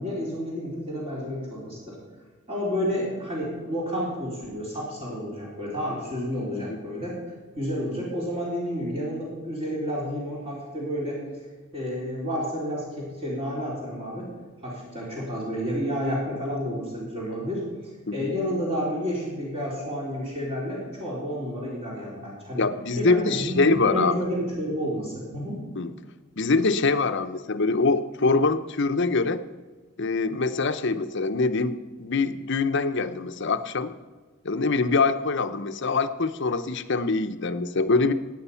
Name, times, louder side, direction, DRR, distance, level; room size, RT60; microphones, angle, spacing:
voice 1, 0.0-2.0 2.5-7.2 7.6-11.2 11.7-14.3 14.6-17.6 18.1-22.6 23.0-25.6, equal, 30° right, -6 dB, 3.9 m, -30 dB
voice 2, 22.6-24.2 25.8-25.9 26.4-29.4 30.0-33.9 34.4-38.1, left 3 dB, 60° left, 10 dB, 0.8 m, -24 dB
17.0 x 9.1 x 5.7 m, 1.4 s
head